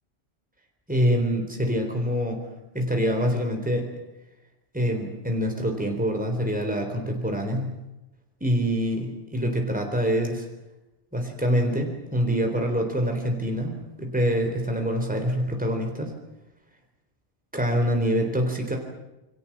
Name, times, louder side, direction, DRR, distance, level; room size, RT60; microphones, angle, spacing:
voice 1, 0.9-2.4 2.7-3.9 4.7-7.7 8.4-10.5 11.1-16.1 17.5-18.8, equal, 5° right, 2 dB, 3.9 m, -25 dB
29.0 x 24.0 x 7.4 m, 0.96 s
omnidirectional pair, 1.1 m